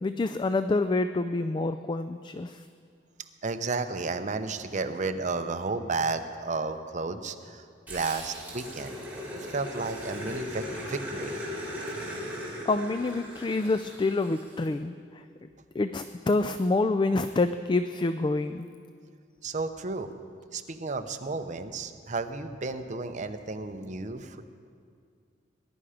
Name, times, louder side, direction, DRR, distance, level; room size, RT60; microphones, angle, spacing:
voice 1, 0.0-2.6 12.7-14.9 15.8-18.7, left 3 dB, 25° left, 10 dB, 0.3 m, -27 dB
voice 2, 3.4-9.0 9.3-11.3 19.4-20.1 20.5-24.4, right 3 dB, 40° right, 8 dB, 0.7 m, -32 dB
Growling, 7.9-14.6, equal, 10° right, 3.2 m, -38 dB
20.0 x 11.0 x 5.0 m, 2.2 s
head